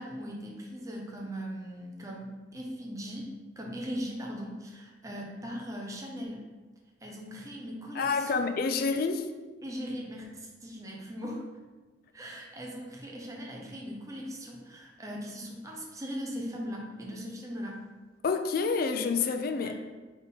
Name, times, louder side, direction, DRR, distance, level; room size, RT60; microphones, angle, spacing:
voice 1, 0.0-3.3 3.6-6.5 7.0-8.4 9.6-11.4 12.1-17.8 19.6-19.8, equal, 20° right, 0.7 m, -39 dB
voice 2, 8.0-9.3 18.2-19.8, left 4 dB, 55° left, 0.4 m, -28 dB
3.6 x 3.6 x 4.1 m
head